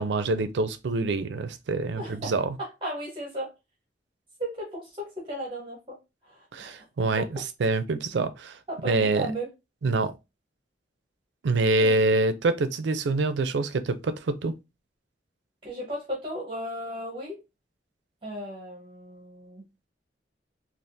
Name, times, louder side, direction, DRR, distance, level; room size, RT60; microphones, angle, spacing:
voice 1, 0.0-2.6 6.5-8.6 8.8-9.3 9.8-10.1 11.4-14.5, right 3 dB, 85° right, 0.4 m, -26 dB
voice 2, 2.0-2.3 2.6-3.5 4.4-6.0 6.2-6.8 7.2-7.3 8.7-9.5 11.8-12.0 15.6-17.4 18.2-19.6, equal, 30° right, 0.9 m, -35 dB
3.4 x 2.4 x 2.6 m
head